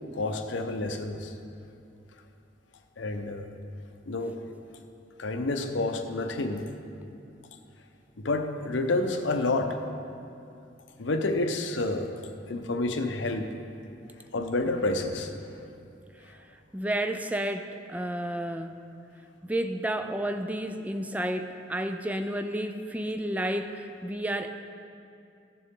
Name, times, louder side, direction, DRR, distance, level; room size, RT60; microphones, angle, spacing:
voice 1, 0.1-1.3 3.0-3.5 4.1-4.4 5.2-6.6 8.2-9.8 11.0-12.1 12.5-13.5 14.3-15.3, left 2 dB, 80° left, 6 dB, 0.8 m, -29 dB
voice 2, 16.7-18.8 19.4-24.5, right 1 dB, 10° right, 7 dB, 0.3 m, -31 dB
15.0 x 6.9 x 3.7 m, 2.5 s
head